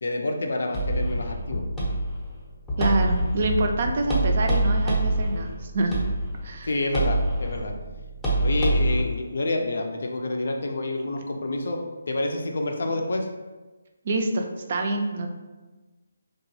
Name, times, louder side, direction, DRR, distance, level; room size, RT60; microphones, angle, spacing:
voice 1, 0.0-1.6 6.7-7.7 8.4-11.8 12.1-13.3, left 2 dB, 65° left, 3 dB, 0.4 m, -28 dB
sound 1, 0.7-9.0, right 1 dB, 10° left, 0.6 m, -26 dB
voice 2, 2.8-5.9 6.4-6.7 14.0-15.3, right 2 dB, 45° right, 3 dB, 0.3 m, -26 dB
2.9 x 2.2 x 2.6 m, 1.2 s
figure-of-eight pair, 155°, 0 cm